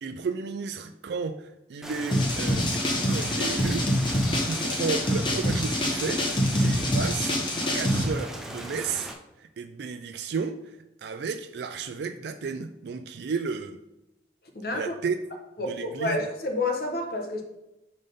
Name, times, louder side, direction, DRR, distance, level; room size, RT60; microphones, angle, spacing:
voice 1, 0.0-3.9 4.5-7.4 7.7-10.6 11.0-13.8 14.7-15.2 15.7-16.2, right 5 dB, 65° right, 0.3 m, -33 dB
Rain, 1.8-9.1, equal, 5° right, 0.5 m, -39 dB
sound 1, 2.1-8.0, equal, 25° left, 0.9 m, -25 dB
voice 2, 14.5-15.0 15.6-17.4, left 2 dB, 55° left, 1.0 m, -29 dB
5.5 x 3.6 x 5.3 m
head